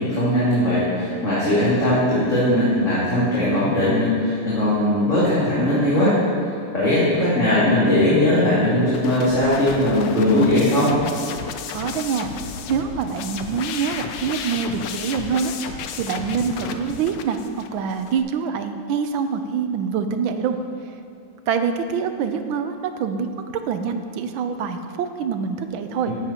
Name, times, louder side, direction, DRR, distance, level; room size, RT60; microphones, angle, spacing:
voice 1, 0.0-6.1 6.7-10.9 26.0-26.1, left 1 dB, 35° left, -11 dB, 2.8 m, -19 dB
sound 1, 8.9-18.2, left 7 dB, 70° left, 1.1 m, -33 dB
voice 2, 11.7-12.3 12.7-20.6 21.5-23.3 23.7-26.1, right 6 dB, 70° right, 8 dB, 1.3 m, -25 dB
14.5 x 11.0 x 2.9 m, 2.6 s
omnidirectional pair, 2.4 m